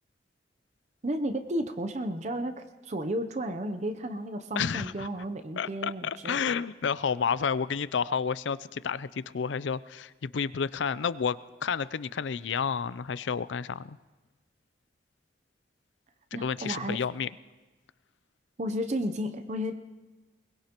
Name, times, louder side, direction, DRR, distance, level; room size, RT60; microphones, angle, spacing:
voice 1, 1.0-6.5 16.3-17.0 18.6-19.7, equal, 40° right, 9 dB, 0.7 m, -33 dB
voice 2, 4.6-5.1 5.6-14.0 16.4-17.3, left 6 dB, 85° left, 16 dB, 0.5 m, -30 dB
22.0 x 20.5 x 3.0 m, 1.2 s
head